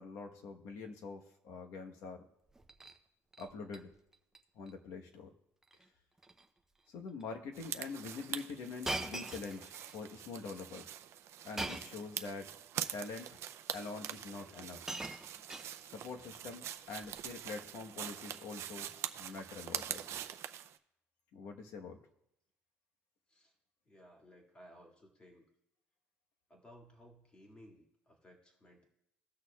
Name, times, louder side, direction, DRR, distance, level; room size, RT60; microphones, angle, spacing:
voice 1, 0.0-2.3 3.4-3.9 4.5-5.3 6.9-11.0 11.4-12.5 12.9-13.3 13.7-14.8 15.8-20.2 21.3-22.0, left 4 dB, 75° left, 4 dB, 1.1 m, -45 dB
Shatter, 2.5-3.0 3.3-3.8 4.1-4.4 4.7-4.8 5.6-5.9 6.2-6.5 7.2-7.3 8.8-10.0 11.6-12.1 13.1-13.2 14.2-14.3 14.6-16.1 17.0-17.3, right 2 dB, 10° right, 0.6 m, -42 dB
sound 1, 7.5-20.8, right 10 dB, 60° right, 0.4 m, -44 dB
voice 2, 23.9-25.5 26.5-28.8, equal, 20° left, 1 dB, 2.0 m, -59 dB
18.0 x 6.4 x 2.3 m, 0.80 s
cardioid pair, 125°, 5 cm